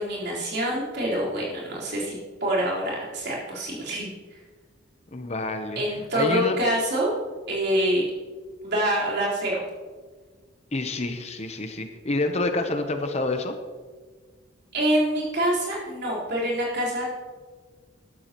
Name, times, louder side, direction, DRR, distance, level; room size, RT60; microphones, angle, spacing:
voice 1, 0.0-4.4 5.8-7.1 7.5-8.0 8.6-9.6 14.7-17.1, equal, 55° right, -6 dB, 4.1 m, -26 dB
voice 2, 5.1-6.6 10.7-13.6, left 2 dB, 30° left, 6 dB, 0.8 m, -28 dB
13.0 x 12.5 x 3.0 m, 1.5 s
head